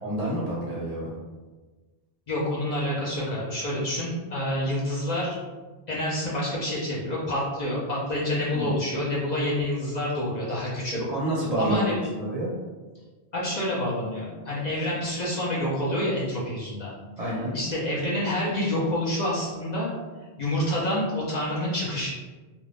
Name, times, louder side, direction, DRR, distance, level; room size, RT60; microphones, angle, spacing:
voice 1, 0.0-1.1 8.5-8.8 10.9-12.5 17.2-17.5, right 1 dB, 45° right, -6 dB, 0.6 m, -29 dB
voice 2, 2.3-5.4 5.9-11.0 11.6-12.0 13.3-16.9 17.5-19.9 20.4-22.1, left 1 dB, 45° left, -6 dB, 0.7 m, -28 dB
2.5 x 2.3 x 3.3 m, 1.3 s
omnidirectional pair, 1.1 m